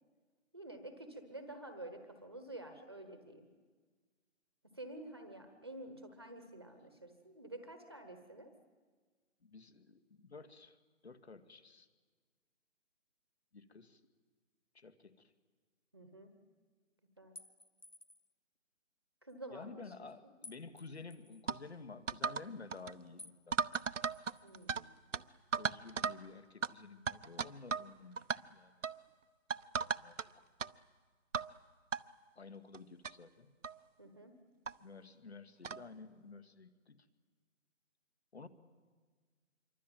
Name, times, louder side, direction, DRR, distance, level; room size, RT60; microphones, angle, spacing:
voice 1, 0.5-3.5 4.6-8.5 15.9-16.3 17.2-17.3 19.2-19.8 24.4-24.9 34.0-34.4, right 1 dB, 20° right, 7 dB, 1.2 m, -49 dB
voice 2, 9.4-10.8 11.0-11.9 13.5-14.0 14.7-15.3 19.5-23.6 25.6-28.8 30.0-30.5 32.4-33.5 34.8-37.1 38.3-38.5, left 4 dB, 55° left, 10 dB, 2.2 m, -52 dB
sound 1, 17.4-18.3 20.4-21.4 23.2-23.4 23.7-24.7, left 2 dB, 35° left, 0.7 m, -56 dB
sound 2, 21.5-21.6 22.1-22.5 22.7-22.9 23.5-24.8 25.1-25.2 25.5-26.2 26.6-26.7 27.1-27.9 28.2-28.4 28.8-29.0 29.5-30.3 30.6-30.7 31.3-31.5 31.9-32.0 32.7-32.8 33.0-33.1 33.6-33.8 34.7-34.8 35.6-35.8, right 5 dB, 70° right, 0.9 m, -36 dB
26.5 x 23.5 x 9.1 m, 1.5 s
hypercardioid pair, 180°, 39 cm